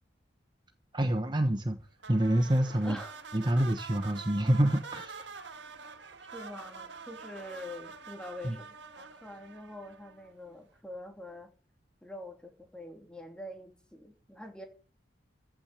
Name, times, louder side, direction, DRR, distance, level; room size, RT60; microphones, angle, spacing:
voice 1, 0.9-1.8 2.1-3.0 3.3-5.3 8.4-8.6, right 1 dB, 25° right, 1.1 m, -27 dB
sound 1, 2.0-10.5, right 5 dB, 65° right, 1.8 m, -47 dB
voice 2, 2.8-3.2 6.3-11.5 12.0-14.7, left 1 dB, 5° left, 2.9 m, -45 dB
15.0 x 6.2 x 7.9 m
head